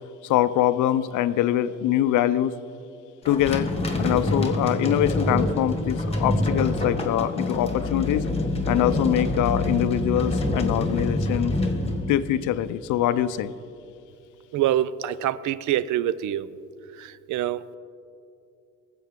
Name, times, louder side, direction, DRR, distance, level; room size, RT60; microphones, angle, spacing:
voice 1, 0.2-2.5 3.3-3.7 4.0-8.3 8.7-11.5 12.1-13.5, left 12 dB, 80° left, 14 dB, 0.5 m, -23 dB
sound 1, 3.2-12.7, left 2 dB, 20° left, 1.4 m, -26 dB
voice 2, 14.5-16.5 17.0-17.8, right 12 dB, 75° right, 17 dB, 0.4 m, -25 dB
19.0 x 7.7 x 3.6 m, 2.6 s
cardioid pair, 90°, 30 cm